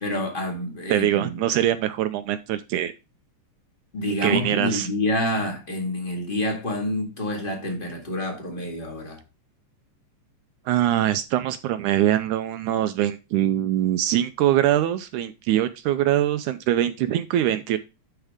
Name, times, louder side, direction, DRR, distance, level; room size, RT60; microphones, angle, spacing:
voice 1, 0.0-1.4 3.9-9.2, left 1 dB, 25° left, 1.3 m, -27 dB
voice 2, 0.9-2.9 4.2-4.9 10.7-17.8, right 12 dB, 80° right, 1.9 m, -23 dB
11.5 x 4.5 x 3.5 m
omnidirectional pair, 3.8 m